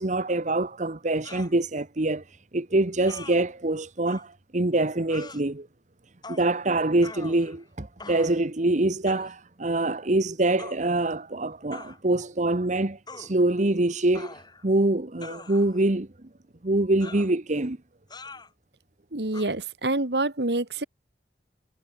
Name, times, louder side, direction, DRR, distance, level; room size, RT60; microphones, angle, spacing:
voice 1, 0.0-5.7 6.3-16.1 16.6-17.8, right 2 dB, 45° right, 1.2 m, -25 dB
sound 1, 1.2-1.5 3.1-3.4 4.1-4.2 5.1-5.4 6.2-6.5 7.0-7.6 8.0-8.4 9.1-9.3 10.6-10.8 11.7-12.0 13.1-13.3 14.2-14.7 15.2-15.8 17.0-17.3 18.1-18.5 19.3-19.5, left 3 dB, 25° left, 5.2 m, -43 dB
voice 2, 19.1-20.8, right 2 dB, 65° right, 2.4 m, -27 dB
head